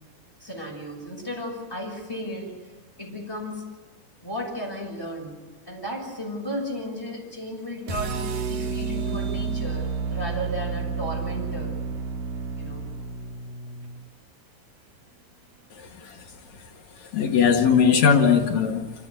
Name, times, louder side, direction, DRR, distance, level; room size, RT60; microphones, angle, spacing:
voice 1, 0.4-2.6 3.0-3.7 4.2-11.8 12.5-12.9, equal, 5° left, 6.2 m, -34 dB
sound 1, 7.9-14.0, right 5 dB, 90° right, 3.7 m, -30 dB
voice 2, 15.8-16.2 17.0-18.9, left 6 dB, 65° left, 2.0 m, -20 dB
26.5 x 14.5 x 9.6 m
omnidirectional pair, 4.4 m